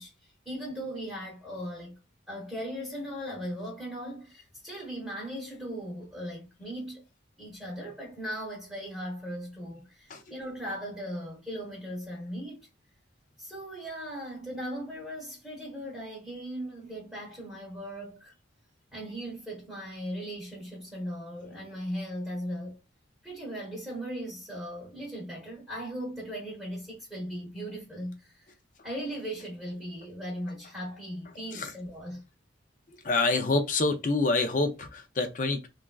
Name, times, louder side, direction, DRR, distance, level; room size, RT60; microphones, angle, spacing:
voice 1, 0.0-2.0 2.3-7.0 7.4-12.7 13.4-18.3 18.9-22.8 23.2-28.6 28.8-32.3, equal, 5° right, 1.0 m, -38 dB
voice 2, 33.0-35.7, left 3 dB, 40° left, 0.5 m, -26 dB
3.3 x 2.4 x 2.3 m
head